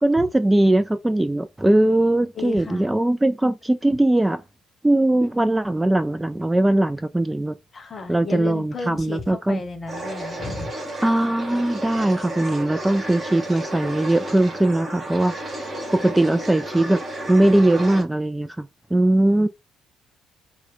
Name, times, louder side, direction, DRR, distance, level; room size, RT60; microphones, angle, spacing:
voice 1, 0.0-4.4 4.8-7.5 8.1-9.6 11.0-17.0 17.3-18.7 18.9-19.5, right 1 dB, 10° right, 0.3 m, -20 dB
voice 2, 2.3-2.9 7.7-10.7 19.2-19.5, left 4 dB, 35° left, 0.9 m, -34 dB
sound 1, 9.9-18.0, right 1 dB, 35° right, 2.0 m, -32 dB
4.4 x 2.2 x 3.5 m
figure-of-eight pair, 50°, 0 cm